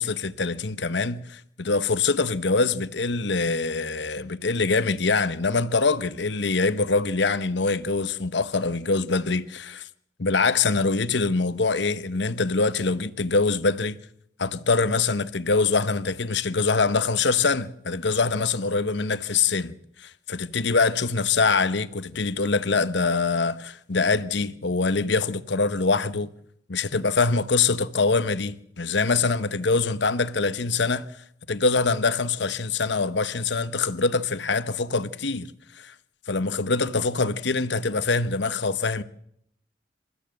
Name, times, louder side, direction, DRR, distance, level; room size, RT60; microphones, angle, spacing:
voice 1, 0.0-9.9 10.2-14.0 14.4-19.7 20.0-26.3 26.7-31.1 31.5-35.5 35.8-35.9 36.3-39.0, left 4 dB, 75° left, 1.0 m, -24 dB
27.5 x 14.5 x 7.8 m
head